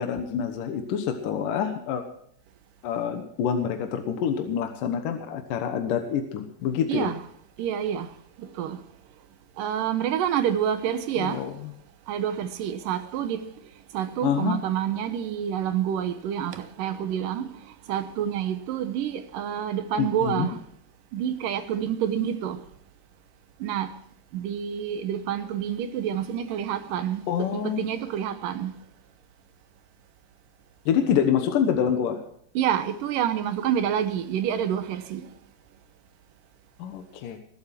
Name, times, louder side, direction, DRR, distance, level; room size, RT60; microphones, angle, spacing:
voice 1, 0.0-2.0 2.8-7.1 11.2-11.7 14.2-14.6 20.0-20.5 27.3-27.8 30.9-32.2 36.8-37.4, left 8 dB, 65° left, 2.6 m, -26 dB
voice 2, 7.6-8.1 8.4-8.8 9.6-11.4 12.1-13.4 13.9-17.5 17.9-20.6 21.1-22.6 23.6-23.9 24.3-28.7 32.6-35.3, right 9 dB, 70° right, 2.4 m, -28 dB
21.0 x 8.1 x 5.9 m
omnidirectional pair, 4.4 m